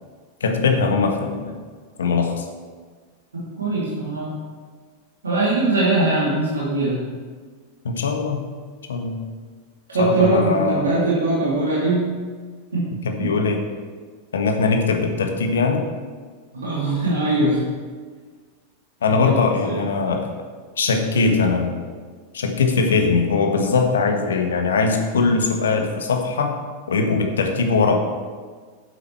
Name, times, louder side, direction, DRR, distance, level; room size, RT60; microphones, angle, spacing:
voice 1, 0.4-1.5 2.0-2.4 7.8-8.4 8.9-9.2 10.0-11.0 13.0-13.6 14.3-15.9 19.0-20.3 20.8-21.8 22.3-26.6 26.9-28.0, left 4 dB, 65° left, 5 dB, 1.3 m, -21 dB
voice 2, 3.3-4.3 5.2-7.0 9.9-12.1 12.7-13.3 16.5-17.6 19.1-19.3 19.6-19.7, right 2 dB, 70° right, -7 dB, 2.7 m, -21 dB
9.4 x 7.9 x 4.6 m, 1.5 s
figure-of-eight pair, 90°, 0 cm